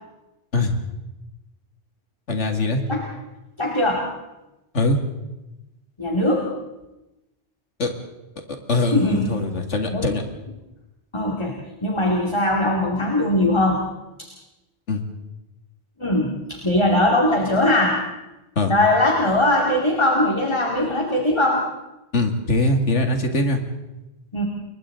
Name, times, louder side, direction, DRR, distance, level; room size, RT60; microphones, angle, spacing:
voice 1, 2.3-2.8 4.7-5.0 7.8-7.9 8.7-10.2 14.9-15.0 18.6-18.7 22.1-23.6, left 2 dB, 85° left, 4 dB, 2.5 m, -22 dB
voice 2, 3.6-4.1 6.0-6.5 8.9-9.5 9.9-10.1 11.1-13.8 14.2-14.3 16.0-18.0 18.7-21.7 24.3-24.4, left 1 dB, 25° left, 0 dB, 2.4 m, -20 dB
29.5 x 22.5 x 3.8 m, 1.0 s
omnidirectional pair, 1.2 m